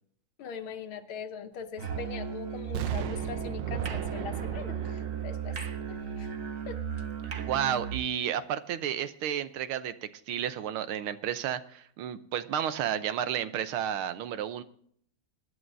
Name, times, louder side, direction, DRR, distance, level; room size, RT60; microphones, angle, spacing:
voice 1, 0.4-5.6 5.9-6.3 6.7-6.8, left 6 dB, 80° left, 6 dB, 1.8 m, -41 dB
Musical instrument, 1.8-8.1, right 7 dB, 50° right, 1.3 m, -35 dB
Explosion, 2.7-6.7 7.1-7.2, right 11 dB, 70° right, 1.2 m, -39 dB
voice 2, 7.4-9.9 10.3-14.6, right 9 dB, 90° right, 12 dB, 1.7 m, -31 dB
23.5 x 11.0 x 2.7 m, 0.63 s
omnidirectional pair, 2.2 m